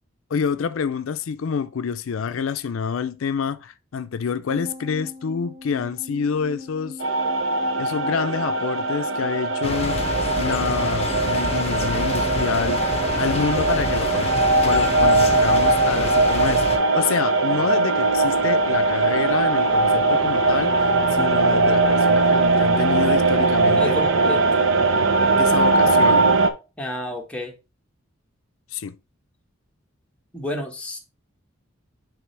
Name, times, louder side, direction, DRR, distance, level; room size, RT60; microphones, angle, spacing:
voice 1, 0.3-7.0 7.8-10.0 10.4-14.3 14.6-24.0 25.4-26.3 28.7-29.0, left 6 dB, 80° left, 0.4 m, -27 dB
sound 1, 4.5-17.0 17.3-17.4, left 3 dB, 45° right, 2.4 m, -40 dB
sound 2, 7.0-26.5, right 3 dB, 70° right, 0.7 m, -20 dB
sound 3, 9.6-16.8, left 3 dB, 30° left, 0.8 m, -28 dB
voice 2, 23.7-24.6 26.8-27.5 30.3-31.0, left 1 dB, 5° left, 1.2 m, -30 dB
9.4 x 3.3 x 3.2 m
head